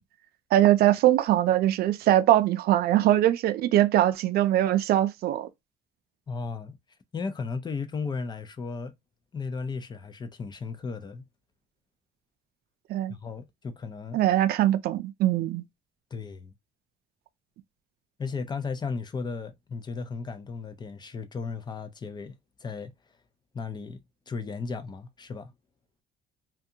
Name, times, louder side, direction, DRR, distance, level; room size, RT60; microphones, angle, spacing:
voice 1, 0.5-5.5 12.9-13.1 14.1-15.6, right 13 dB, 65° right, 0.4 m, -22 dB
voice 2, 6.3-6.8 7.1-8.9 9.3-11.2 13.1-14.2 16.1-16.5 18.2-22.9 23.5-25.5, left 4 dB, 25° left, 0.5 m, -35 dB
2.6 x 2.2 x 2.7 m
cardioid pair, 110°, 17 cm